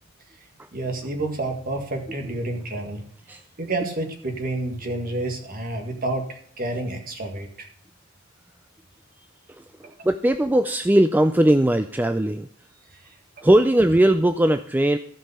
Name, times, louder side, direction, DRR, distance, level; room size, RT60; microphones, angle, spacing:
voice 1, 0.7-3.0 3.6-7.7 9.8-9.9 13.4-13.5, right 2 dB, 45° right, 4 dB, 1.9 m, -29 dB
voice 2, 9.5-12.5 13.4-15.0, right 1 dB, 10° right, 9 dB, 0.3 m, -19 dB
15.0 x 5.5 x 5.6 m, 0.63 s
head